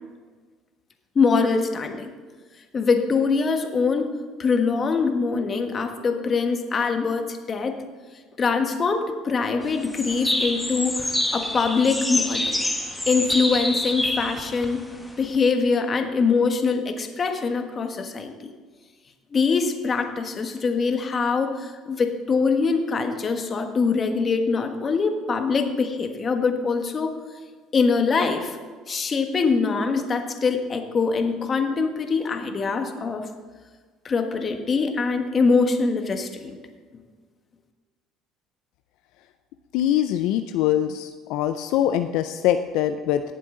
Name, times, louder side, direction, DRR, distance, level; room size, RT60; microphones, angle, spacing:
voice 1, 1.1-2.1 2.7-7.7 8.4-12.6 13.1-14.8 15.2-18.5 19.3-27.1 27.7-28.6 28.9-33.3 34.0-36.5, left 4 dB, 35° left, 5 dB, 1.3 m, -23 dB
sound 1, 9.6-15.4, left 1 dB, 5° left, 1.3 m, -27 dB
voice 2, 39.7-43.2, left 11 dB, 75° left, 9 dB, 0.4 m, -23 dB
17.5 x 7.4 x 3.8 m, 1.5 s
supercardioid pair, 95°, 0 cm